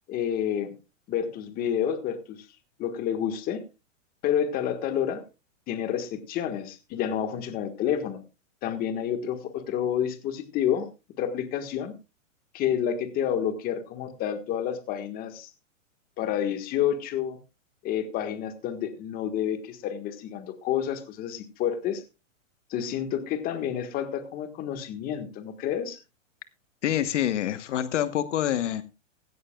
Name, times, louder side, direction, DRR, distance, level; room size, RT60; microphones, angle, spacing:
voice 1, 0.1-0.7 1.1-2.5 2.8-3.6 4.2-5.2 5.7-8.2 8.6-10.9 11.2-11.9 12.5-15.5 16.2-17.4 17.8-22.0 22.7-26.0, left 9 dB, 20° left, 9 dB, 1.5 m, -29 dB
voice 2, 26.8-28.8, left 11 dB, 65° left, 12 dB, 1.3 m, -26 dB
16.5 x 14.5 x 2.3 m, 0.27 s
hypercardioid pair, 160°, 39 cm